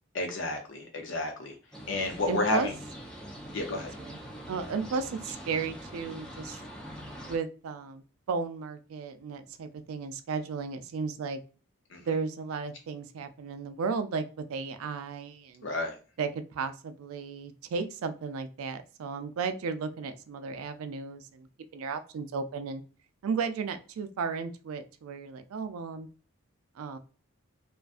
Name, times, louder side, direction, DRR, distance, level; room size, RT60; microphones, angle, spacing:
voice 1, 0.1-1.5 1.9-2.7 3.5-3.9 11.9-12.0 15.6-16.0, left 2 dB, 55° left, 4 dB, 0.6 m, -31 dB
sound 1, 1.7-7.4, equal, 5° left, 0.3 m, -43 dB
voice 2, 2.3-2.7 3.7-4.2 4.5-6.6 7.3-8.0 8.3-11.4 12.0-14.2 14.5-15.7 16.2-21.5 21.7-22.8 23.2-26.1 26.8-27.0, right 5 dB, 80° right, 9 dB, 0.3 m, -34 dB
2.4 x 2.3 x 2.4 m, 0.36 s
head